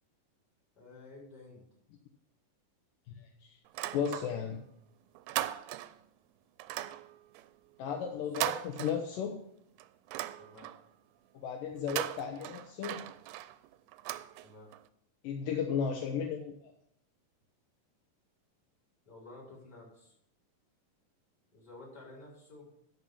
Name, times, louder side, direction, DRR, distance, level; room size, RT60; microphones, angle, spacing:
voice 1, 0.8-1.7 8.1-8.2 10.4-10.7 14.4-14.7 19.0-20.1 21.5-22.7, left 2 dB, 25° left, -4 dB, 5.8 m, -52 dB
voice 2, 3.2-3.6 3.9-4.6 7.8-9.4 11.3-13.0 15.2-16.7, left 7 dB, 75° left, 3 dB, 2.5 m, -35 dB
sound 1, 3.7-4.6 4.9-6.1 6.6-9.4 9.8-10.9 11.7-14.8, right 14 dB, 85° right, 2.2 m, -39 dB
12.5 x 5.5 x 6.9 m, 0.74 s
omnidirectional pair, 4.0 m